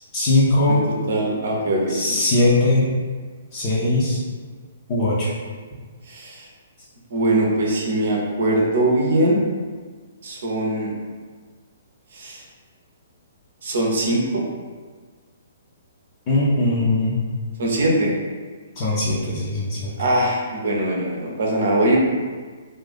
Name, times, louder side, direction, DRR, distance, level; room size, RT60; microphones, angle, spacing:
voice 1, 0.1-0.8 1.9-2.9 3.5-4.2 4.9-5.3 16.3-17.2 18.8-19.9, left 2 dB, 30° left, -8 dB, 0.6 m, -20 dB
voice 2, 1.1-2.2 6.1-6.5 7.1-9.4 10.2-10.9 12.1-12.4 13.6-14.4 17.6-18.1 20.0-22.0, right 1 dB, 55° right, -1 dB, 0.7 m, -21 dB
2.6 x 2.4 x 4.0 m, 1.5 s
figure-of-eight pair, 120°, 0 cm